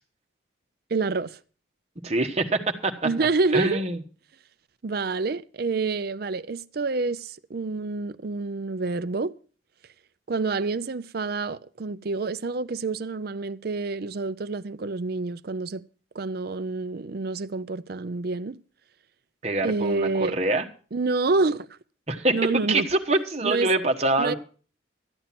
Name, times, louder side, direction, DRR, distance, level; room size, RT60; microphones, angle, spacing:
voice 1, 0.9-1.4 3.0-3.8 4.8-9.3 10.3-15.8 16.2-18.6 19.6-20.4 20.9-21.7 22.3-22.9 23.4-23.7 24.2-24.3, right 3 dB, 50° right, 0.5 m, -27 dB
voice 2, 2.0-2.9 3.5-4.0 19.4-20.6 22.1-24.4, right 2 dB, 35° right, 1.2 m, -25 dB
13.5 x 9.0 x 5.9 m
head